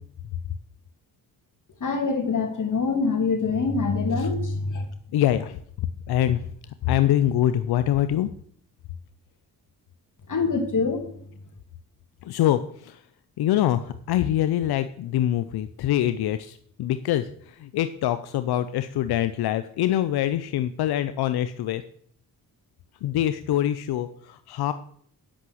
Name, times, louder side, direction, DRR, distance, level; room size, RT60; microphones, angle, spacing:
voice 1, 1.8-4.8 10.3-11.0, left 4 dB, 55° left, 4 dB, 2.6 m, -24 dB
voice 2, 5.1-5.6 6.1-6.4 6.8-8.3 12.2-13.0 13.4-17.3 17.6-21.8 23.0-24.7, left 12 dB, 90° left, 11 dB, 0.5 m, -24 dB
8.6 x 5.7 x 7.8 m, 0.62 s
cardioid pair, 60°, 37 cm